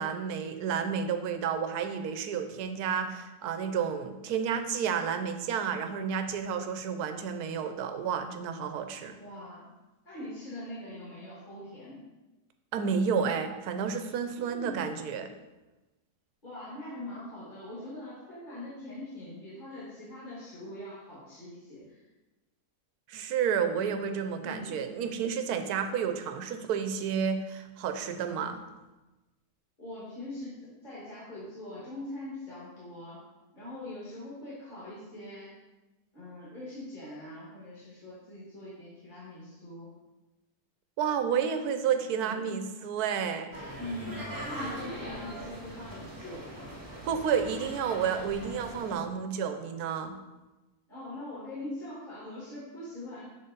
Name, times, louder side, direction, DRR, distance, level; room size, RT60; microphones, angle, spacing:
voice 1, 0.0-9.1 12.7-15.3 23.1-28.6 41.0-43.5 47.0-50.1, right 7 dB, 85° right, 8 dB, 1.1 m, -31 dB
voice 2, 9.2-9.6 10.0-12.0 14.4-15.0 16.4-22.0 24.4-25.1 29.8-30.5 30.8-33.2 33.5-35.5 36.1-39.9 42.1-42.4 43.8-46.7 50.9-53.2, left 1 dB, 30° left, -9 dB, 2.0 m, -42 dB
sound 1, 43.5-48.9, right 1 dB, 15° right, 1.1 m, -41 dB
7.0 x 4.0 x 3.8 m, 1.1 s
omnidirectional pair, 1.6 m